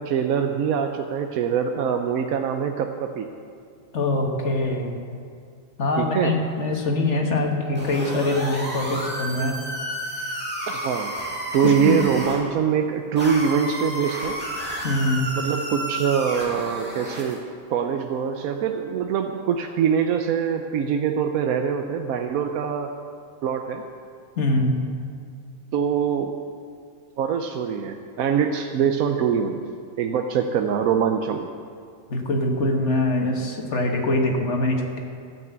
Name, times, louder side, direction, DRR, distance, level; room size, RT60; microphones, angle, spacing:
voice 1, 0.0-3.3 6.0-6.3 10.7-11.1 11.5-14.4 15.4-17.4 17.7-22.9 23.4-23.8 25.7-26.3 27.2-29.6 30.0-31.5, right 7 dB, 75° right, 5 dB, 1.1 m, -23 dB
voice 2, 3.9-4.9 5.8-9.6 11.6-11.9 14.8-15.3 24.4-24.8 32.1-35.0, left 2 dB, 55° left, 2 dB, 1.7 m, -23 dB
sound 1, 7.7-12.4 13.2-17.3, right 1 dB, 5° right, 2.4 m, -31 dB
13.5 x 6.0 x 8.0 m, 2.2 s
omnidirectional pair, 1.5 m